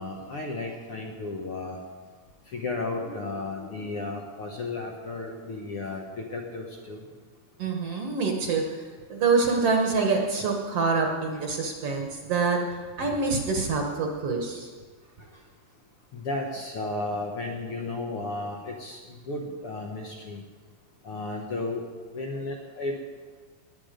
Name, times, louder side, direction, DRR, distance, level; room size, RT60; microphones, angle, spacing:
voice 1, 0.0-1.8 2.5-7.0 13.1-13.2 15.2-15.3 16.1-20.4 21.0-21.8 22.1-22.9, left 2 dB, 60° left, 0 dB, 1.5 m, -34 dB
voice 2, 7.6-8.6 9.1-12.6 13.0-14.7, right 4 dB, 60° right, 2 dB, 1.9 m, -25 dB
20.0 x 9.2 x 5.1 m, 1.5 s
omnidirectional pair, 3.8 m